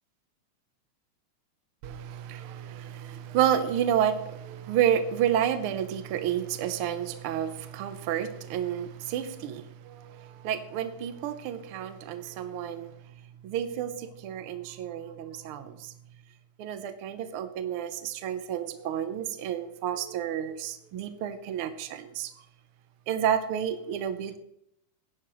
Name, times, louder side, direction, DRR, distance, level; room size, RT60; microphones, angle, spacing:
voice 1, 1.8-12.9 13.4-15.9 16.6-22.3 23.1-24.4, right 10 dB, 80° right, 10 dB, 1.2 m, -30 dB
15.5 x 11.0 x 3.1 m, 0.75 s
omnidirectional pair, 3.5 m